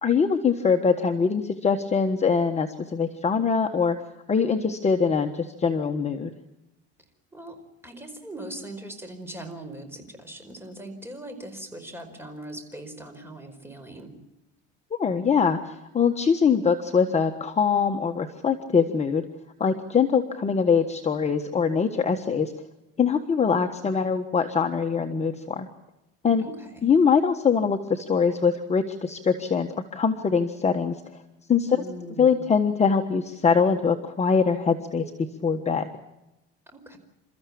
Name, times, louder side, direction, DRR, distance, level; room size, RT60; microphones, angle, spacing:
voice 1, 0.0-4.0 4.3-6.3 15.0-19.2 19.6-22.5 23.0-25.7 26.2-26.4 26.8-31.0 31.5-31.8 32.2-35.0 35.4-35.9, left 6 dB, 25° left, 4 dB, 1.4 m, -23 dB
voice 2, 7.3-14.1 26.4-26.9 31.7-32.4 36.7-37.0, right 1 dB, 10° right, 6 dB, 4.7 m, -40 dB
29.0 x 14.0 x 8.6 m, 0.95 s
cardioid pair, 125°, 29 cm